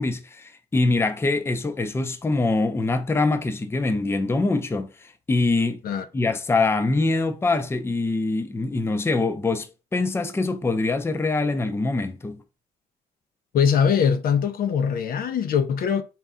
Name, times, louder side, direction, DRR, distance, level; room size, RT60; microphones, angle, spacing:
voice 1, 0.0-5.8 6.1-12.4, left 3 dB, 15° left, 0.5 m, -24 dB
voice 2, 13.5-16.0, left 7 dB, 65° left, 0.5 m, -22 dB
4.2 x 2.3 x 3.6 m
cardioid pair, 105°, 16 cm